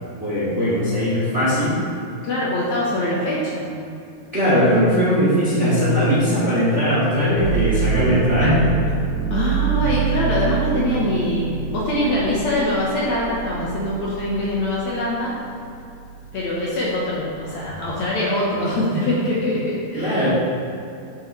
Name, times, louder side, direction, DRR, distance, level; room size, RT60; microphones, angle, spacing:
voice 1, 0.2-1.8 4.3-8.7 19.9-20.3, equal, 25° right, -9 dB, 1.7 m, -19 dB
voice 2, 2.2-3.7 9.3-15.3 16.3-20.3, left 1 dB, 65° left, -6 dB, 2.2 m, -23 dB
sound 1, 7.4-15.2 15.7-16.5, right 6 dB, 50° right, 3.2 m, -25 dB
8.6 x 8.3 x 3.3 m, 2.6 s
omnidirectional pair, 4.1 m